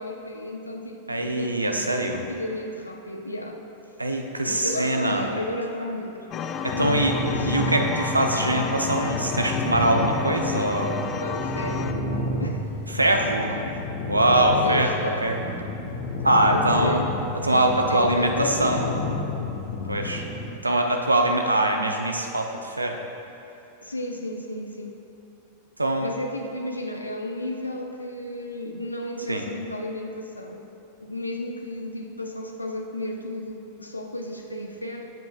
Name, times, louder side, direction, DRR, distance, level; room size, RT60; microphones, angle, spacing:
voice 1, 0.0-3.9 4.4-6.3 6.7-7.7 11.2-12.0 12.4-12.6 13.5-13.8 14.5-15.3 16.5-17.1 17.9-19.0 23.8-25.0 26.0-30.7 31.0-35.1, left 1 dB, 85° left, 3 dB, 1.0 m, -33 dB
voice 2, 1.1-2.2 4.0-5.2 6.6-7.2 7.4-11.1 12.9-13.5 14.1-15.4 16.2-17.0 17.4-19.0 19.9-20.3 20.6-23.0 25.8-26.1 29.3-29.4, right 1 dB, 85° right, 3 dB, 0.9 m, -23 dB
sound 1, 6.3-11.9, left 6 dB, 30° left, 0.6 m, -31 dB
sound 2, 6.7-20.5, left 2 dB, 50° left, 1.3 m, -30 dB
20.5 x 7.9 x 2.5 m, 2.8 s
figure-of-eight pair, 90°, 0 cm